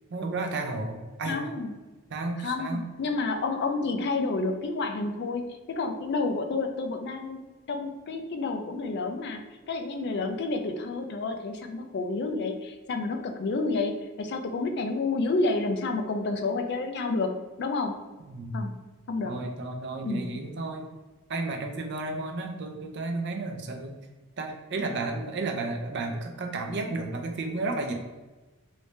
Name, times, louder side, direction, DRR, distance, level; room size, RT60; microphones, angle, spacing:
voice 1, 0.1-1.4 2.1-2.8 18.3-18.6 19.2-20.9 21.3-23.9 24.4-27.9, right 2 dB, 50° right, 4 dB, 0.5 m, -32 dB
voice 2, 1.2-1.7 2.4-9.4 9.7-17.3 17.6-18.0 18.5-18.7 19.1-19.3 20.0-20.3, left 3 dB, 50° left, 6 dB, 0.4 m, -30 dB
3.1 x 2.7 x 3.2 m, 1.2 s
head